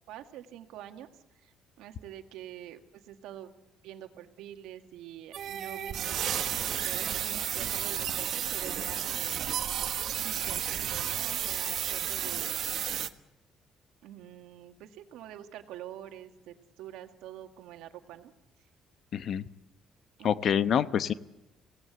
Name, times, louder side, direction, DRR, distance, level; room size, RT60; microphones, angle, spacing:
voice 1, 0.1-1.1 1.4-3.5 3.8-9.4 10.2-12.6 14.0-18.3 20.2-20.9, right 11 dB, 85° right, 6 dB, 1.8 m, -46 dB
sound 1, 5.3-13.1, right 9 dB, 65° right, 1.3 m, -32 dB
voice 2, 19.1-19.4 20.2-21.1, left 8 dB, 60° left, 13 dB, 0.9 m, -26 dB
24.5 x 17.5 x 8.1 m, 0.98 s
cardioid pair, 90°, 0 cm